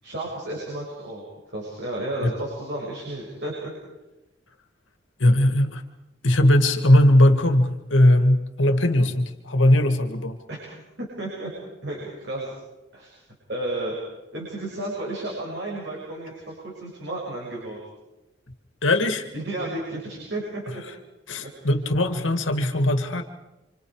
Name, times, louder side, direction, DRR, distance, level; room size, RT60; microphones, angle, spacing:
voice 1, 0.0-1.2 1.5-3.7 10.5-10.7 11.2-11.5 11.8-12.5 12.9-13.1 13.5-14.0 14.3-17.8 19.3-20.8 21.4-21.5, right 1 dB, 65° right, -3 dB, 6.9 m, -32 dB
voice 2, 5.2-5.8 6.2-10.4 18.8-19.3 21.3-23.2, left 1 dB, 85° left, 7 dB, 2.1 m, -19 dB
28.5 x 27.0 x 5.0 m, 1.0 s
head